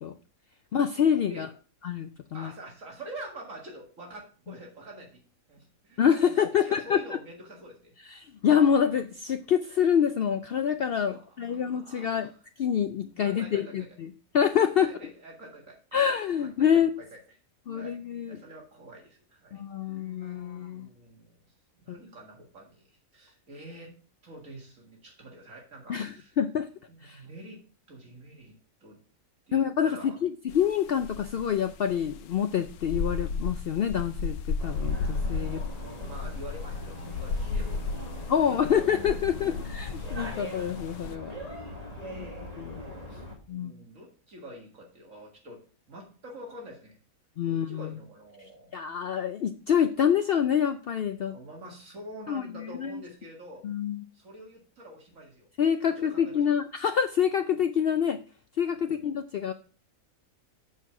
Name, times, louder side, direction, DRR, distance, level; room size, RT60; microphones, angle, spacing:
voice 1, 0.7-1.5 1.8-2.5 6.0-7.0 8.1-12.3 12.6-14.9 15.9-16.9 17.7-18.4 19.5-20.9 21.9-22.0 25.9-26.7 27.0-27.2 29.5-35.6 38.3-41.4 42.2-42.3 42.6-42.8 43.5-43.7 47.4-48.0 48.7-51.3 52.3-53.0 53.6-54.0 55.6-58.2 58.6-59.5, left 8 dB, 75° left, 8 dB, 0.5 m, -26 dB
voice 2, 2.3-5.2 5.5-6.0 6.5-7.9 11.1-12.4 13.2-13.9 14.8-16.1 16.4-16.7 17.0-17.2 17.7-18.0 18.3-20.4 20.7-21.4 21.8-23.9 24.2-26.3 26.9-27.6 27.9-28.5 28.8-29.0 29.5-30.2 35.4-38.0 38.4-38.7 39.4-39.6 41.6-41.9 43.5-45.6 45.9-47.0 47.5-48.7 51.3-53.6 54.1-55.5 55.8-56.5 58.7-59.1, right 1 dB, 60° right, -1 dB, 2.2 m, -46 dB
sound 1, 30.5-30.7 31.0-41.1, left 4 dB, 90° left, 1.1 m, -34 dB
sound 2, 34.6-43.4, equal, 25° right, 1.7 m, -41 dB
7.4 x 4.6 x 5.8 m, 0.40 s
omnidirectional pair, 1.5 m